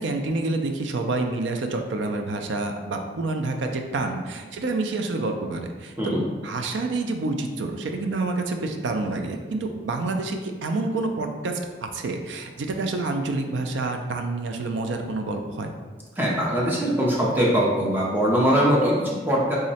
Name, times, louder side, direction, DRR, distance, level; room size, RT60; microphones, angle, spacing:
voice 1, 0.0-6.1 6.4-15.7, right 2 dB, 75° right, 4 dB, 0.4 m, -28 dB
voice 2, 16.2-19.6, equal, 10° right, -4 dB, 0.5 m, -22 dB
3.7 x 2.1 x 4.0 m, 1.4 s
head